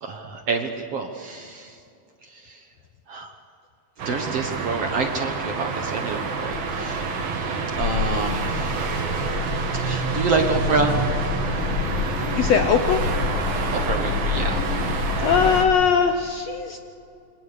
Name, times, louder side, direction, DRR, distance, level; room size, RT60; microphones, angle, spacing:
voice 1, 0.0-1.8 2.2-2.7 3.1-3.3 4.1-7.1 7.8-9.1 9.7-11.3 13.7-14.7, right 4 dB, 55° right, 4 dB, 1.8 m, -28 dB
sound 1, 4.0-15.7, right 4 dB, 85° right, 4.2 m, -28 dB
sound 2, 6.5-15.6, left 7 dB, 50° left, 1.7 m, -29 dB
voice 2, 12.4-13.0 15.2-16.8, left 6 dB, 70° left, 6 dB, 1.7 m, -20 dB
28.0 x 25.5 x 6.8 m, 2.6 s
omnidirectional pair, 4.2 m